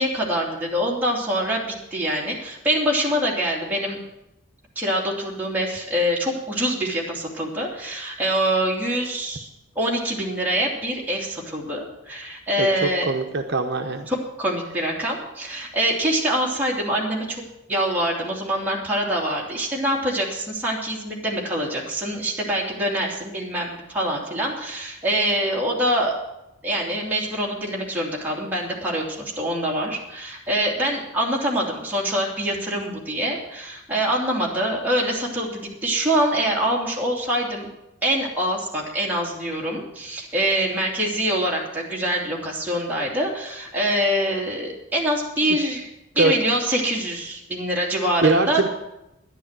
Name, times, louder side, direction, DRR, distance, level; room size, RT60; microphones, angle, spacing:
voice 1, 0.0-1.6 1.9-4.0 4.8-9.5 9.7-13.1 14.1-17.4 17.7-26.2 26.6-37.7 38.0-45.9 46.1-48.6, right 1 dB, 10° right, -3 dB, 2.8 m, -25 dB
voice 2, 12.6-14.1 46.2-46.3 48.2-48.7, right 3 dB, 55° right, 4 dB, 0.9 m, -22 dB
12.0 x 10.5 x 7.4 m, 0.91 s
head